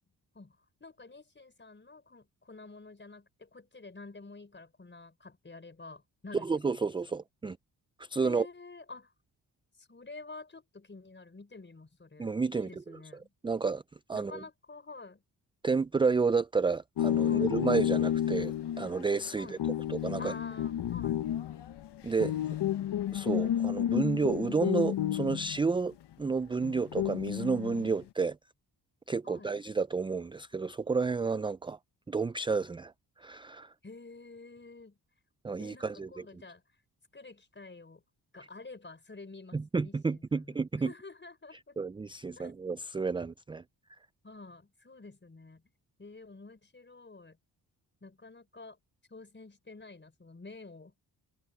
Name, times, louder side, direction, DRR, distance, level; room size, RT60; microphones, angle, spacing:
voice 1, 0.3-6.8 7.1-7.2 8.2-9.1 9.8-13.3 14.1-15.2 17.2-17.5 19.4-19.6 20.2-21.3 29.2-29.6 33.8-35.0 35.6-36.6 37.1-38.0 38.3-41.8 42.4-42.5 44.2-45.6 46.0-47.4 48.0-48.8 49.1-50.9, left 3 dB, 25° left, 5.3 m, -49 dB
voice 2, 6.4-7.6 8.0-8.5 12.2-13.0 13.4-13.8 14.1-14.3 15.6-19.6 19.9-20.3 22.0-22.3 23.1-28.4 29.1-31.8 32.1-32.9 33.2-33.7 35.4-36.1 39.5-40.9 41.8-43.6, right 4 dB, 15° right, 0.3 m, -31 dB
sound 1, 17.0-25.9 26.6-28.0, left 11 dB, 75° left, 1.1 m, -31 dB
open air
cardioid pair, 90°, 41 cm